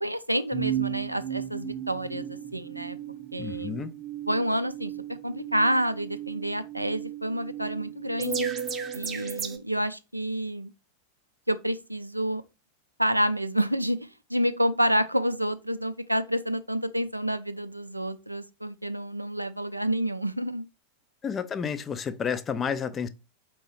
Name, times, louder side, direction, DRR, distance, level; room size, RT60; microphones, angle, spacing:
voice 1, 0.0-3.0 3.3-3.8 4.3-8.5 8.9-10.7 11.5-12.4 13.0-20.6, equal, 90° right, 0.3 m, -28 dB
sound 1, 0.5-9.6, right 8 dB, 20° right, 0.6 m, -35 dB
voice 2, 3.4-3.9 21.2-23.1, left 7 dB, 20° left, 0.4 m, -30 dB
4.4 x 2.9 x 3.1 m
figure-of-eight pair, 90°, 0 cm